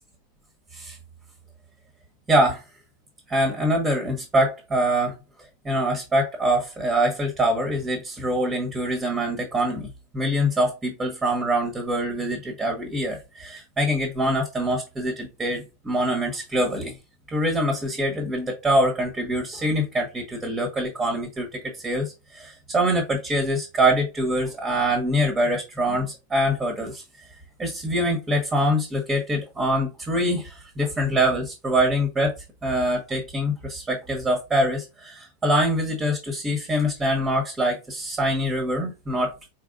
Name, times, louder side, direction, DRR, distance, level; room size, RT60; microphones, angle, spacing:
voice 1, 2.3-2.6 3.3-5.2 5.6-16.9 17.3-27.3 27.6-32.3 32.6-39.3, equal, 15° right, 2 dB, 1.3 m, -24 dB
4.5 x 3.6 x 2.5 m, 0.26 s
figure-of-eight pair, 90°, 0 cm